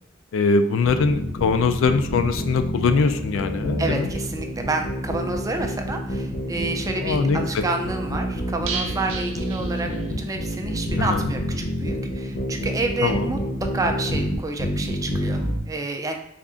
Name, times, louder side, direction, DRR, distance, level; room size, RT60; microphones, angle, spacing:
voice 1, 0.3-4.1 7.0-7.6 11.0-11.2 13.0-13.3, left 4 dB, 75° left, 9 dB, 0.3 m, -22 dB
sound 1, 0.8-15.6, equal, 55° left, 0.8 m, -28 dB
voice 2, 3.8-9.9 10.2-16.1, right 2 dB, 15° right, 4 dB, 0.3 m, -29 dB
sound 2, 8.7-10.4 10.7-10.8 11.1-11.2, right 5 dB, 70° right, 0.5 m, -34 dB
3.5 x 2.4 x 3.7 m, 0.76 s
head